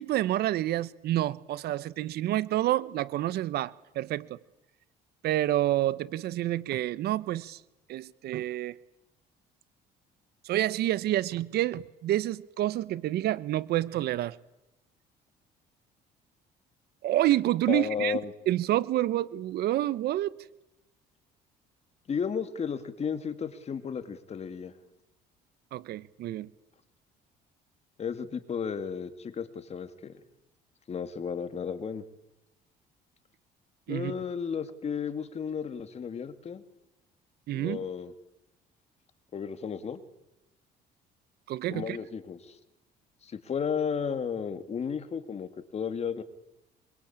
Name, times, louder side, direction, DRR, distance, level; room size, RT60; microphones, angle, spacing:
voice 1, 0.0-4.4 5.2-7.6 7.9-8.8 10.4-14.4 17.0-18.2 18.5-20.3 25.7-26.5 33.9-34.1 37.5-37.8 41.5-42.0, right 14 dB, 70° right, 1.0 m, -28 dB
voice 2, 17.7-18.3 22.1-24.7 28.0-30.2 30.9-32.0 33.9-36.6 37.5-38.1 39.3-40.0 41.7-42.6 43.2-46.2, left 6 dB, 40° left, 2.5 m, -33 dB
25.5 x 23.5 x 8.9 m
cardioid pair, 110°, 17 cm